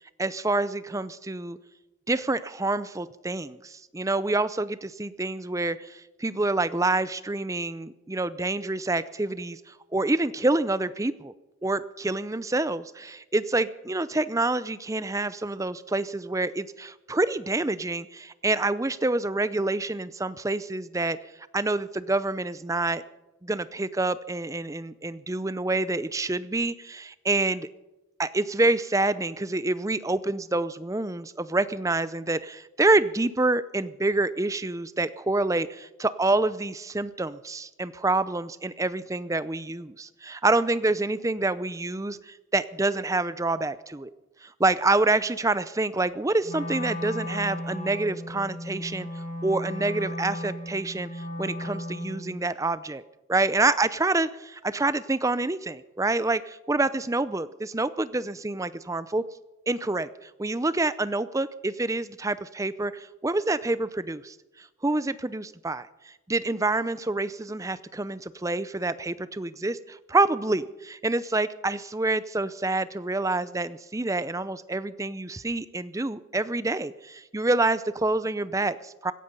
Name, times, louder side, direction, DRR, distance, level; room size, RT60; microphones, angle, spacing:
voice 1, 0.2-1.6 2.1-11.3 11.6-21.2 21.5-23.0 23.4-27.7 28.2-44.1 44.4-49.1 49.4-53.0 53.3-59.2 59.7-79.1, right 2 dB, 15° right, 15 dB, 0.5 m, -27 dB
Wind instrument woodwind instrument, 46.4-52.4, left 1 dB, 35° left, 2.1 m, -35 dB
17.0 x 15.0 x 5.4 m, 1.0 s
head